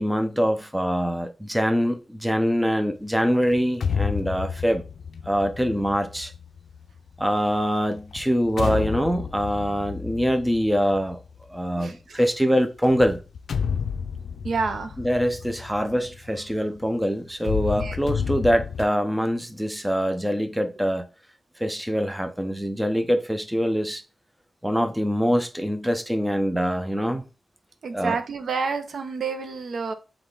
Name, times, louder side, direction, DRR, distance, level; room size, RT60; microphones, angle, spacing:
voice 1, 0.0-4.8 5.3-6.3 7.2-11.2 11.5-13.2 15.0-21.0 21.6-24.0 24.6-27.2 27.9-28.2, equal, 5° right, 0.5 m, -24 dB
sound 1, 3.5-7.2 7.9-11.6 12.8-16.9 17.3-18.9, left 6 dB, 85° left, 0.4 m, -31 dB
voice 2, 14.4-14.9 17.8-18.0 27.8-29.9, right 5 dB, 70° right, 0.6 m, -28 dB
5.1 x 2.3 x 3.8 m
wide cardioid pair, 125°, 0 cm